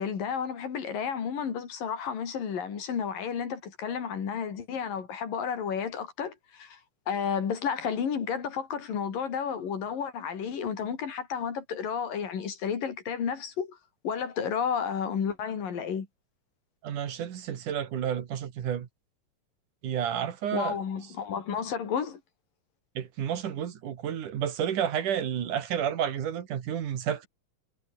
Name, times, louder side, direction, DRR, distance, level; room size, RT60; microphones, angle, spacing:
voice 1, 0.0-6.8 7.1-13.8 14.0-16.1 20.5-22.2, left 7 dB, 90° left, 5.1 m, -32 dB
voice 2, 16.8-18.9 19.8-20.8 23.0-27.3, right 9 dB, 70° right, 3.5 m, -31 dB
omnidirectional pair, 3.8 m